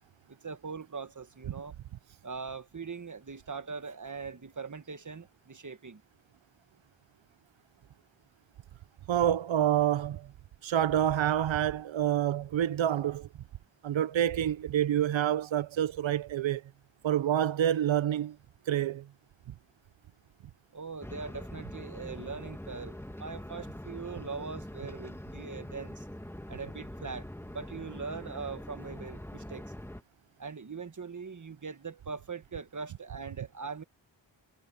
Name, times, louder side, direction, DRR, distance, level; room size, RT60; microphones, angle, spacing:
voice 1, 0.3-1.8 2.2-6.0 20.7-26.1 26.5-29.6 30.4-33.8, right 5 dB, 40° right, 1.5 m, -41 dB
voice 2, 9.1-10.3 10.6-13.3 13.8-16.6 17.0-18.4 18.7-19.1, right 10 dB, 90° right, 0.6 m, -27 dB
sound 1, 21.0-30.0, left 1 dB, 5° left, 1.5 m, -43 dB
cardioid pair, 50°, 45 cm